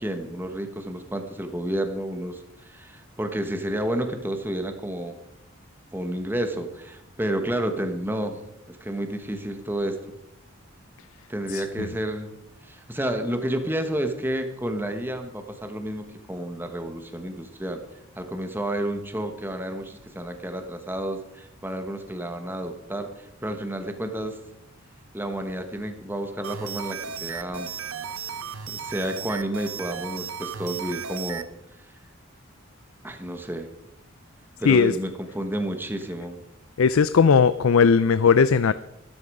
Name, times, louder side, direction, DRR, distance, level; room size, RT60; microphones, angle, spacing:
voice 1, 0.0-5.2 5.9-8.4 8.7-10.0 11.3-12.3 12.6-17.8 18.2-24.4 25.1-27.7 28.7-31.4 33.0-33.7 34.6-36.4, right 1 dB, 10° right, 6 dB, 1.2 m, -30 dB
voice 2, 11.5-11.9 34.6-35.0 36.8-38.7, left 5 dB, 75° left, 14 dB, 0.5 m, -18 dB
sound 1, 26.4-31.5, right 7 dB, 80° right, 0.9 m, -35 dB
13.5 x 13.0 x 4.9 m, 0.83 s
head